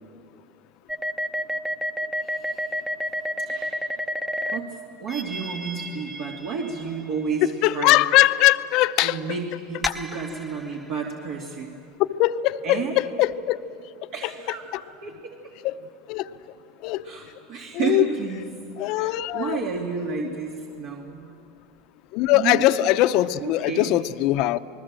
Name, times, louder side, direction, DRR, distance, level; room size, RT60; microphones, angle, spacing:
sound 1, 0.9-4.6 5.1-7.3 9.8-10.9, equal, 5° right, 0.8 m, -30 dB
voice 1, 2.2-2.8 3.4-3.9 4.5-4.7 5.0-8.0 9.0-11.8 12.6-13.0 14.1-14.6 15.0-15.5 17.0-18.5 19.0-21.3 22.3-22.6 23.4-24.0, right 5 dB, 60° right, -1 dB, 2.5 m, -31 dB
voice 2, 7.6-9.2 9.9-10.0 12.1-13.6 14.7-14.8 15.6-15.8 16.1-16.3 16.8-17.0 17.7-18.1 18.8-19.6 22.1-24.6, left 15 dB, 55° left, 12 dB, 0.7 m, -21 dB
28.0 x 20.5 x 7.6 m, 2.5 s
supercardioid pair, 140°, 0 cm